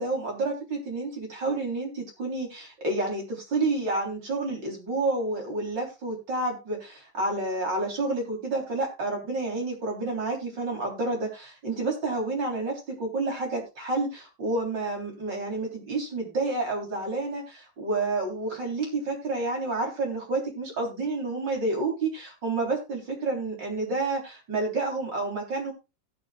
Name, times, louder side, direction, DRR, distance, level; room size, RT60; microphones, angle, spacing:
voice 1, 0.0-25.7, right 2 dB, 80° right, 1 dB, 4.3 m, -29 dB
17.0 x 8.7 x 2.4 m, 0.27 s
omnidirectional pair, 1.9 m